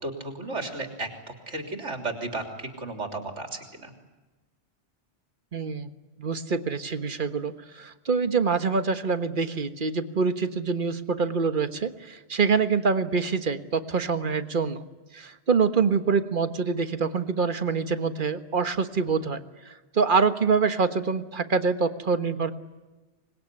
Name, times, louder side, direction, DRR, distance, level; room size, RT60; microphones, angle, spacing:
voice 1, 0.0-1.1 1.5-3.9, right 2 dB, 85° right, 4 dB, 3.8 m, -34 dB
voice 2, 5.5-5.9 6.2-14.8 15.1-19.4 19.6-22.5, right 5 dB, 45° right, 10 dB, 1.5 m, -25 dB
25.5 x 20.5 x 9.8 m, 1.2 s
omnidirectional pair, 1.2 m